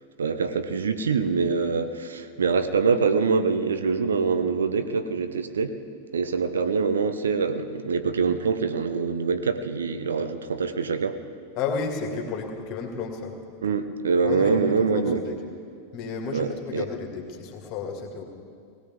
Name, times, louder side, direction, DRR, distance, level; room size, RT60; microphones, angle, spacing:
voice 1, 0.2-5.8 6.1-11.2 13.6-15.2 16.3-16.8, right 5 dB, 70° right, 9 dB, 0.7 m, -24 dB
voice 2, 11.6-13.3 14.2-15.4 15.9-18.2, left 5 dB, 40° left, 1 dB, 2.3 m, -32 dB
20.0 x 16.5 x 3.6 m, 2.2 s
figure-of-eight pair, 90°, 0 cm